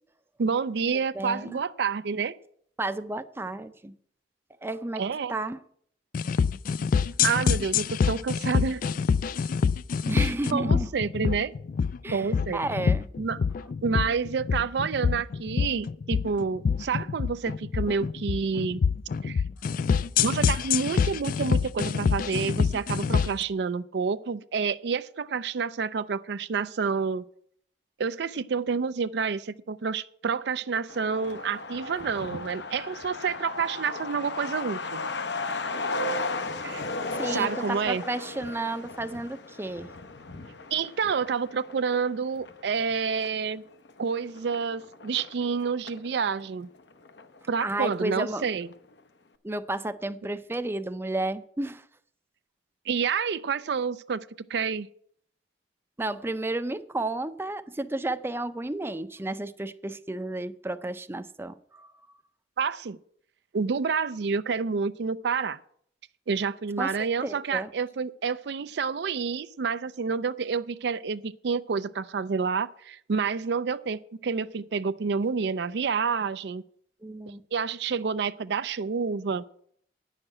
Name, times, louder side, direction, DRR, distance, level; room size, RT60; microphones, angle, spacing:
voice 1, 0.4-2.4 5.0-5.3 7.2-8.8 10.5-11.5 12.1-12.6 13.2-13.4 13.8-18.8 19.2-19.4 20.2-27.2 28.0-35.0 36.6-36.8 37.3-38.0 40.7-43.6 44.0-46.7 47.5-48.7 52.9-54.9 62.6-63.0 63.5-65.6 66.3-76.6 77.5-79.4, right 5 dB, 70° right, 0.4 m, -29 dB
voice 2, 1.2-1.6 2.8-3.9 4.6-5.0 5.3-5.6 10.1-10.9 12.0-13.1 37.2-39.9 47.6-48.5 49.4-51.8 56.0-61.9 66.8-66.9 67.2-67.7 77.0-77.4, right 2 dB, 15° right, 0.5 m, -32 dB
sound 1, 6.1-23.4, left 6 dB, 50° left, 0.3 m, -26 dB
Truck, 30.9-46.1 46.4-46.5 46.7-47.6 47.9-48.0 48.4-48.7, left 3 dB, 75° left, 0.9 m, -36 dB
9.6 x 6.5 x 8.8 m
head